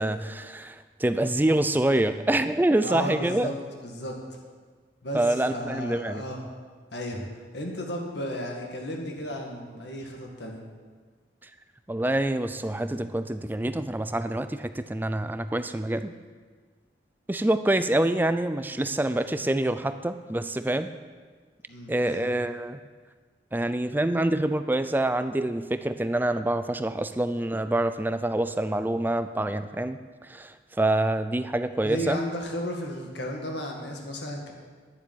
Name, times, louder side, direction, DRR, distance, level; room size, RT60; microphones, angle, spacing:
voice 1, 0.0-3.5 5.1-6.2 11.9-16.1 17.3-20.9 21.9-22.8 23.5-32.2, right 1 dB, 10° right, 10 dB, 0.4 m, -26 dB
voice 2, 2.8-4.4 5.0-5.2 5.5-6.4 6.9-7.2 7.5-10.6 21.7-22.3 31.8-34.5, equal, 65° left, 1 dB, 2.0 m, -34 dB
9.9 x 7.2 x 9.4 m, 1.5 s
head